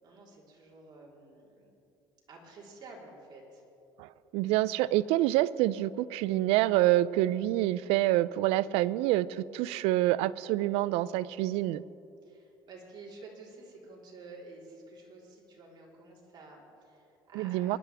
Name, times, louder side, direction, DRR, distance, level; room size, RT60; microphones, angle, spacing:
voice 1, 0.0-1.7 2.3-3.6 12.2-17.8, right 3 dB, 45° right, -3 dB, 3.9 m, -51 dB
voice 2, 4.0-11.8 17.3-17.8, right 15 dB, 80° right, 19 dB, 0.4 m, -27 dB
24.0 x 11.5 x 3.5 m, 2.8 s
supercardioid pair, 90°, 10 cm